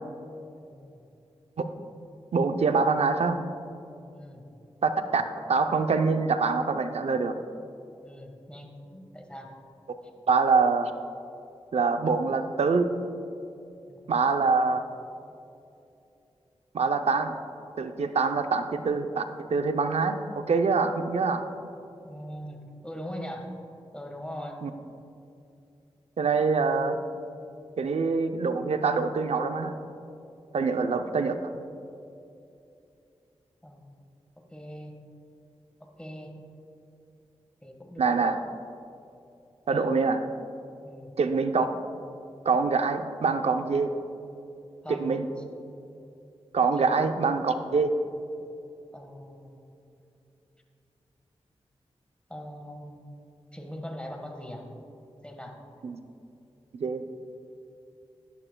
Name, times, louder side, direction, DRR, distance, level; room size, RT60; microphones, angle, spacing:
voice 1, 0.5-1.0 4.1-4.4 8.0-9.5 13.9-14.0 18.3-18.4 22.0-23.5 23.9-24.6 33.6-34.0 34.5-34.9 35.8-36.3 37.6-38.4 39.7-39.9 40.8-41.1 44.8-45.3 46.8-46.9 48.9-49.9 52.3-53.0 53.5-54.7 55.2-55.6, equal, 10° left, 2 dB, 1.5 m, -41 dB
voice 2, 2.3-3.4 4.8-5.2 5.5-7.3 10.3-10.9 11.7-12.9 14.1-14.8 16.7-17.4 17.8-19.2 19.5-21.4 24.6-24.7 26.2-27.0 27.8-29.7 30.5-31.3 38.0-38.4 39.7-40.2 41.2-41.7 42.5-43.9 44.9-45.3 46.5-47.9 55.8-56.0 56.7-57.0, right 4 dB, 75° right, 8 dB, 0.6 m, -25 dB
11.0 x 11.0 x 2.3 m, 2.7 s
cardioid pair, 45°, 11 cm